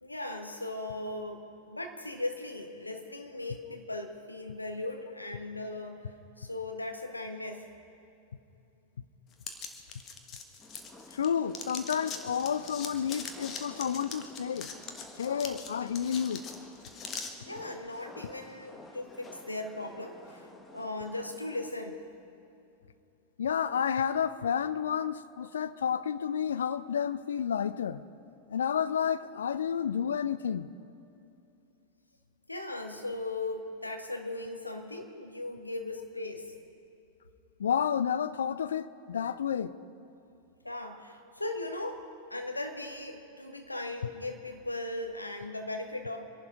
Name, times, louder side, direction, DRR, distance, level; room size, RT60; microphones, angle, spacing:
voice 1, 0.0-7.7 17.5-22.0 32.5-36.5 40.6-46.2, left 2 dB, 85° left, 1.4 m, -38 dB
sound 1, 9.4-11.3 11.5-17.3, left 6 dB, 30° left, 1.5 m, -42 dB
sound 2, 10.6-21.7, left 2 dB, 15° left, 1.6 m, -52 dB
voice 2, 11.1-14.7 15.2-16.4 23.4-28.0 28.5-30.7 37.6-39.7, left 8 dB, 65° left, 0.5 m, -30 dB
25.5 x 11.5 x 5.0 m
figure-of-eight pair, 90°, 0 cm